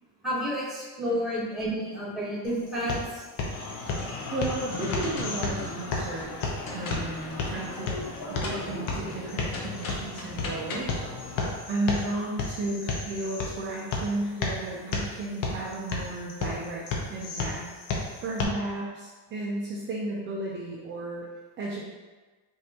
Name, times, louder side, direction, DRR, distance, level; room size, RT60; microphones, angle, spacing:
voice 1, 0.2-3.2, equal, ahead, -7 dB, 1.2 m, -30 dB
sound 1, 2.4-18.4, left 3 dB, 70° left, 1.0 m, -34 dB
sound 2, 3.5-11.6, left 3 dB, 45° left, 0.8 m, -37 dB
voice 2, 3.9-11.0 11.7-17.7 18.2-21.3 21.6-21.8, right 2 dB, 25° right, -4 dB, 0.5 m, -34 dB
5.1 x 2.7 x 2.9 m, 1.3 s
cardioid pair, 135°, 45 cm